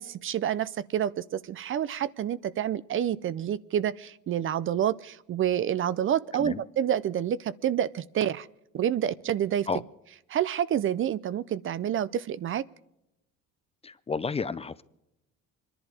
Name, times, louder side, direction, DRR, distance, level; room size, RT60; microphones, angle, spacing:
voice 1, 0.0-8.5 8.7-9.7 10.3-12.6, right 10 dB, 45° right, 19 dB, 0.5 m, -28 dB
voice 2, 13.8-14.8, left 5 dB, 20° left, 16 dB, 0.5 m, -31 dB
25.0 x 11.0 x 4.8 m, 0.87 s
cardioid pair, 110°, 30 cm